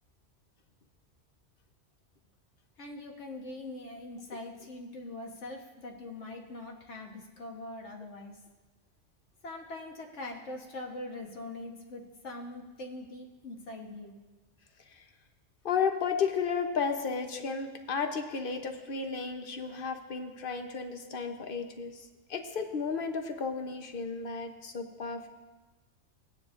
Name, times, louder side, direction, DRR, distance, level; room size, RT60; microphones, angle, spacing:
voice 1, 2.8-8.4 9.4-14.2, left 2 dB, 70° left, 1 dB, 1.5 m, -42 dB
voice 2, 15.6-25.3, left 5 dB, 50° left, 5 dB, 1.0 m, -33 dB
16.5 x 9.7 x 2.5 m, 1.2 s
omnidirectional pair, 1.3 m